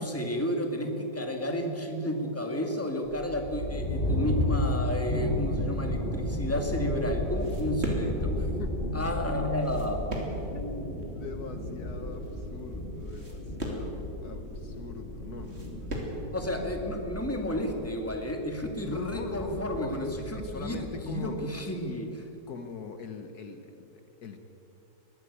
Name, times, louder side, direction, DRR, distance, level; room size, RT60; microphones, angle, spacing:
voice 1, 0.0-8.5 8.9-10.0 16.3-22.3, equal, 10° left, 3 dB, 2.2 m, -32 dB
sound 1, 3.1-21.1, left 1 dB, 30° left, 4.8 m, -34 dB
voice 2, 4.0-4.4 8.6-8.8 10.5-16.3 18.8-21.5 22.5-24.4, left 5 dB, 65° left, 7 dB, 1.6 m, -42 dB
sound 2, 7.3-16.3, right 1 dB, 35° right, 3.3 m, -39 dB
22.0 x 15.0 x 8.4 m, 3.0 s
omnidirectional pair, 1.9 m